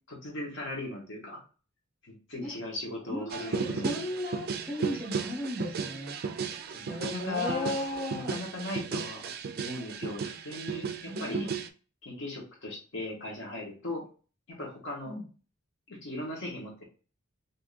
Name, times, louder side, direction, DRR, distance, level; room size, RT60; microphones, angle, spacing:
voice 1, 0.1-1.4 2.0-4.0 6.7-7.7 8.1-9.3 9.5-11.5 12.0-14.0 14.5-15.1 15.9-16.8, left 2 dB, 60° left, -2 dB, 1.1 m, -38 dB
voice 2, 3.1-6.2 6.7-8.5 11.1-11.6 15.0-15.2, left 1 dB, 5° left, -6 dB, 1.4 m, -36 dB
sound 1, 3.3-11.7, right 6 dB, 45° right, 0.3 m, -35 dB
3.5 x 2.6 x 2.5 m, 0.38 s
head